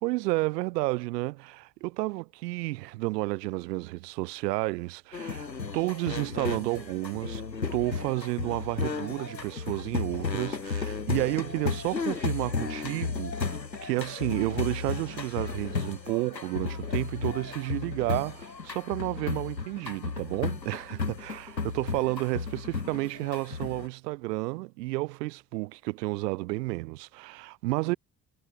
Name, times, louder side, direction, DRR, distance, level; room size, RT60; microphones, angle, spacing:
voice 1, 0.0-5.5 5.7-7.4 7.7-28.0, right 21 dB, 75° right, 1.5 m, -31 dB
sound 1, 5.1-23.9, left 4 dB, 90° left, 5.7 m, -34 dB
figure-of-eight pair, 45°, 49 cm